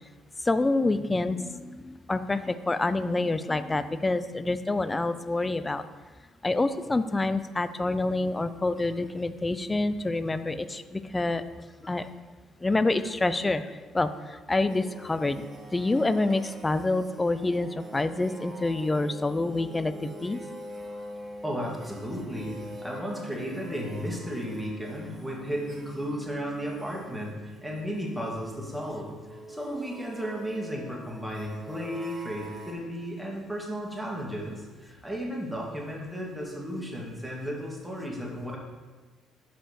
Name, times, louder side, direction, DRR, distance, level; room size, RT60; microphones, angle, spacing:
voice 1, 0.4-5.8 6.4-11.4 11.8-12.1 12.6-15.5 15.7-20.4, left 2 dB, 15° left, 12 dB, 0.4 m, -27 dB
sound 1, 14.6-32.7, right 1 dB, 30° right, 1.3 m, -45 dB
voice 2, 21.4-38.6, equal, 5° right, -3 dB, 1.9 m, -34 dB
5.7 x 5.0 x 6.6 m, 1.3 s
cardioid pair, 105°, 0 cm